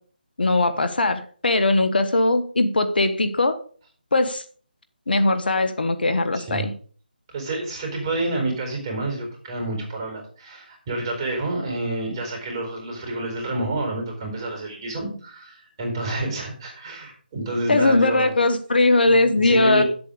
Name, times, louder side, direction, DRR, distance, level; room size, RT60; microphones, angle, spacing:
voice 1, 0.4-3.6 4.1-4.4 5.1-6.7 17.7-19.8, left 2 dB, 70° left, 9 dB, 1.4 m, -20 dB
voice 2, 6.3-6.7 7.3-18.3 19.0-19.8, right 2 dB, 25° right, 1 dB, 4.3 m, -29 dB
8.6 x 7.8 x 5.1 m, 0.44 s
figure-of-eight pair, 160°, 5 cm